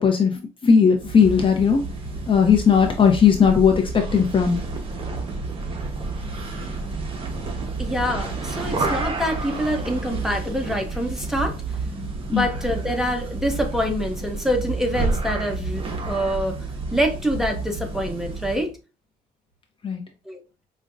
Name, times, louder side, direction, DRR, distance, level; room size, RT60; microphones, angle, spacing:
voice 1, 0.0-1.9 2.3-4.6 12.3-12.5 19.8-20.0, left 6 dB, 30° left, 3 dB, 0.6 m, -17 dB
sound 1, 0.9-18.7, right 3 dB, 30° right, 0.9 m, -30 dB
voice 2, 7.8-11.6 12.3-16.5 16.9-18.7 20.3-20.4, equal, ahead, 3 dB, 0.8 m, -25 dB
5.1 x 2.1 x 2.5 m, 0.31 s
cardioid pair, 110°, 17 cm